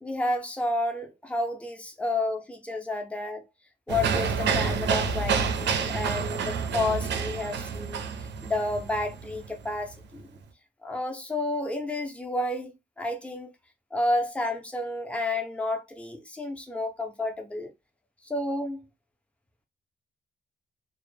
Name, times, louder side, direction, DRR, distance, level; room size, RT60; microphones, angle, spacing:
voice 1, 0.0-3.4 3.9-8.0 8.4-10.3 10.8-13.5 13.9-17.7 18.2-18.8, left 2 dB, 5° left, 0.5 m, -30 dB
sound 1, 3.9-10.4, right 5 dB, 65° right, 0.4 m, -28 dB
2.0 x 2.0 x 3.1 m
wide cardioid pair, 130°, 19 cm